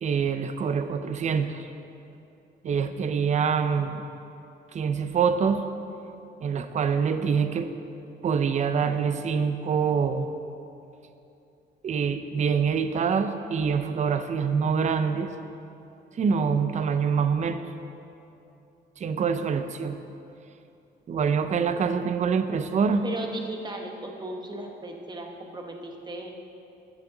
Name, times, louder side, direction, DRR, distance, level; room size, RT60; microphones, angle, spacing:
voice 1, 0.0-1.6 2.6-4.0 4.7-5.6 6.4-7.7 8.2-10.3 11.8-15.3 16.2-17.6 19.0-20.0 21.1-23.0, right 6 dB, 40° right, 9 dB, 0.6 m, -25 dB
voice 2, 23.0-26.3, right 2 dB, 25° right, 2 dB, 1.0 m, -36 dB
12.5 x 8.7 x 3.9 m, 2.7 s
cardioid pair, 135°, 19 cm